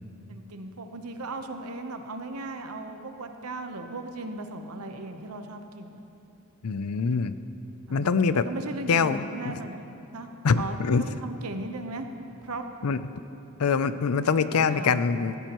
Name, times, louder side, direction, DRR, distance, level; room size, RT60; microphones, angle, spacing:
voice 1, 0.3-6.0 7.9-10.3 10.6-12.1 12.4-12.6 14.2-15.0, right 2 dB, 85° right, 6 dB, 1.0 m, -37 dB
voice 2, 6.6-7.3 7.9-8.5 8.9-9.6 10.4-11.1 12.8-13.0 13.6-15.5, left 5 dB, 80° left, 13 dB, 0.5 m, -24 dB
17.0 x 14.5 x 3.0 m, 2.8 s
head